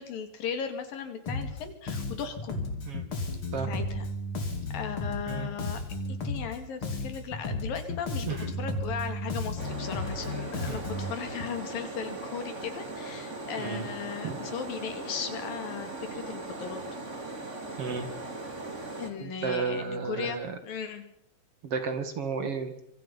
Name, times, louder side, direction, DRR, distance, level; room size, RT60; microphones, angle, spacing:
voice 1, 0.0-2.6 3.7-4.1 4.7-5.8 6.1-16.8 19.0-21.0, left 7 dB, 85° left, 7 dB, 4.3 m, -37 dB
Bass guitar, 1.3-1.6 1.9-6.6 6.8-11.1, left 2 dB, 40° left, 3.6 m, -34 dB
sound 1, 9.6-19.1, right 2 dB, 25° right, 2.6 m, -39 dB
voice 2, 17.8-18.1 19.2-20.5 21.6-22.7, right 5 dB, 45° right, 8 dB, 2.7 m, -32 dB
26.0 x 24.5 x 5.6 m, 0.72 s
omnidirectional pair, 3.9 m